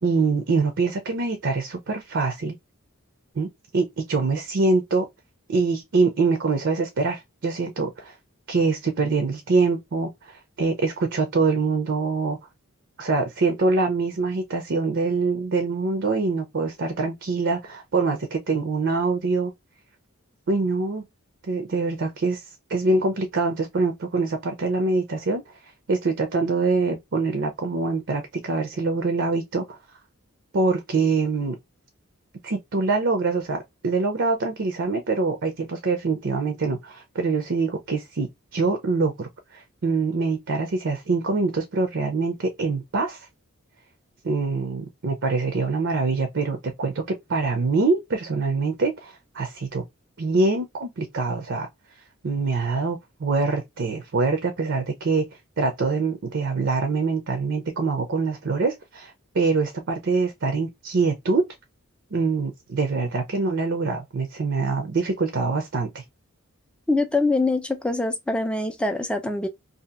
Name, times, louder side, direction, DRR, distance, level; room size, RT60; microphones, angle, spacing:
voice 1, 0.0-2.6 3.4-3.5 3.7-5.1 5.5-8.1 8.5-12.4 13.0-19.5 20.5-21.0 21.5-22.4 22.7-25.4 25.9-29.8 30.5-31.6 32.4-39.3 39.8-43.3 44.2-47.0 47.3-49.8 50.2-51.7 52.2-55.3 55.6-61.4 62.1-66.0, right 3 dB, 55° right, 0.5 m, -24 dB
voice 2, 66.9-69.5, left 2 dB, 5° left, 0.4 m, -24 dB
2.8 x 2.5 x 2.3 m
head